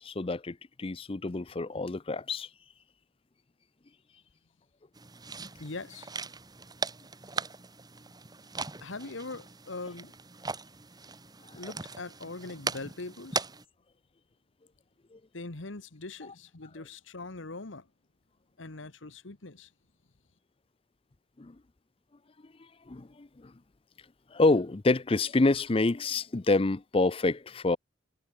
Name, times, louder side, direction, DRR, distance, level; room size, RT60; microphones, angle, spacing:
voice 1, 0.0-2.5 21.4-21.5 22.9-23.5 24.3-27.8, left 3 dB, 30° left, 0.5 m, -27 dB
sound 1, 4.9-13.6, right 4 dB, 20° right, 2.1 m, -39 dB
voice 2, 5.6-6.1 8.8-10.1 11.5-13.5 15.3-17.9 18.6-19.7, left 3 dB, 80° left, 1.5 m, -41 dB
head